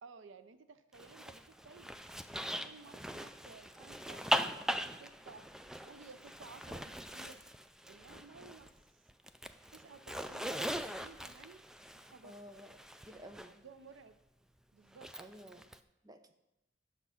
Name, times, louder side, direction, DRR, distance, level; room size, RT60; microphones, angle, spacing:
voice 1, 0.0-1.9 2.4-4.3 5.0-5.5 5.8-7.4 7.9-8.7 9.7-11.6 12.0-12.4 13.4-14.1 14.7-15.1, right 4 dB, 85° right, 11 dB, 0.5 m, -55 dB
Zipper (clothing), 0.9-8.8 9.1-13.5 14.9-15.8, equal, 5° right, 0.3 m, -40 dB
voice 2, 12.2-12.7 13.1-13.5 15.2-15.7 16.0-16.3, equal, 20° right, 8 dB, 0.7 m, -52 dB
8.5 x 6.8 x 5.7 m, 0.90 s
head